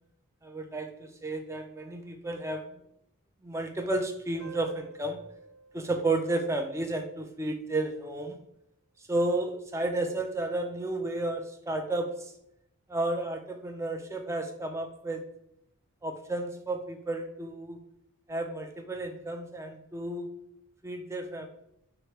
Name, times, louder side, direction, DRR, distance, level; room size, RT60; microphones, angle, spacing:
voice 1, 0.4-2.8 3.4-5.2 5.7-8.4 9.0-12.3 12.9-15.2 16.0-17.8 18.3-20.3 20.8-21.5, right 2 dB, 15° right, 6 dB, 0.3 m, -32 dB
sound 1, 4.4-7.5, right 6 dB, 80° right, 0.8 m, -50 dB
3.1 x 2.8 x 4.5 m, 0.79 s
head